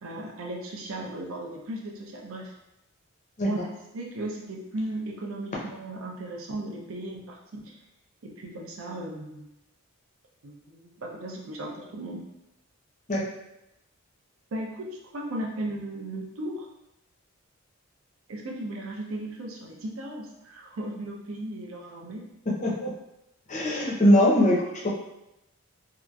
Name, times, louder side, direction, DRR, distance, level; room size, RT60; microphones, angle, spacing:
voice 1, 0.0-2.5 3.4-3.7 3.9-7.8 8.2-9.5 10.4-12.2 14.5-16.7 18.3-22.3, right 1 dB, 65° right, -1 dB, 0.5 m, -36 dB
voice 2, 23.5-24.6 24.8-24.9, equal, 35° left, -4 dB, 0.5 m, -21 dB
2.8 x 2.4 x 2.2 m, 0.88 s
head